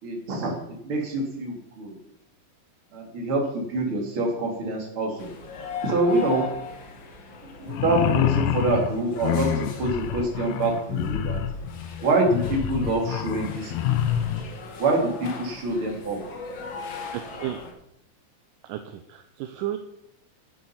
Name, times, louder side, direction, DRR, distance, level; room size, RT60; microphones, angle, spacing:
voice 1, 0.0-0.5 0.8-1.9 2.9-5.3 5.8-6.5 7.6-11.4 12.0-14.5 14.8-16.2, right 2 dB, 40° right, 0 dB, 3.0 m, -26 dB
sound 1, 5.2-17.7, left 4 dB, 50° left, 1.4 m, -39 dB
sound 2, 7.7-14.5, left 10 dB, 85° left, 1.6 m, -27 dB
voice 2, 17.1-17.6 18.6-19.8, right 12 dB, 80° right, 7 dB, 2.1 m, -33 dB
9.4 x 8.9 x 5.8 m, 0.76 s
omnidirectional pair, 4.1 m